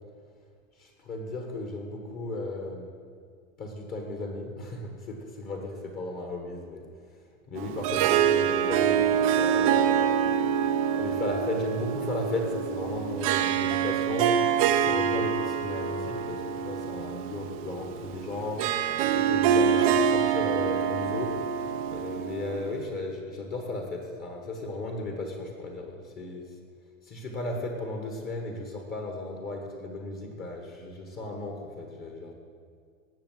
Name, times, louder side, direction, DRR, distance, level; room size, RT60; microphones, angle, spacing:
voice 1, 0.8-2.9 3.6-6.8 7.5-10.1 10.9-18.8 19.1-21.4 21.9-26.5 27.0-32.3, left 2 dB, 20° left, 3 dB, 1.4 m, -35 dB
Harp, 7.6-22.8, right 8 dB, 30° right, 0.5 m, -26 dB
18.5 x 7.0 x 7.4 m, 2.1 s
supercardioid pair, 165°, 41 cm